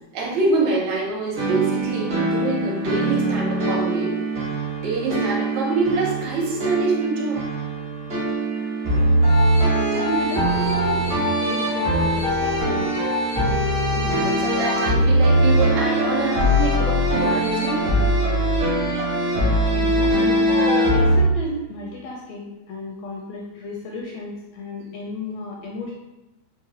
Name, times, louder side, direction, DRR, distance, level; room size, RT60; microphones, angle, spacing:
voice 1, 0.1-4.2 4.8-7.4 13.9-17.9, right 3 dB, 75° right, -2 dB, 1.9 m, -25 dB
sound 1, 1.4-21.2, right 1 dB, 50° right, 0.8 m, -21 dB
voice 2, 9.9-12.9 19.7-20.4 20.9-26.0, left 1 dB, 80° left, -2 dB, 1.5 m, -33 dB
4.8 x 3.0 x 2.7 m, 0.95 s
omnidirectional pair, 3.4 m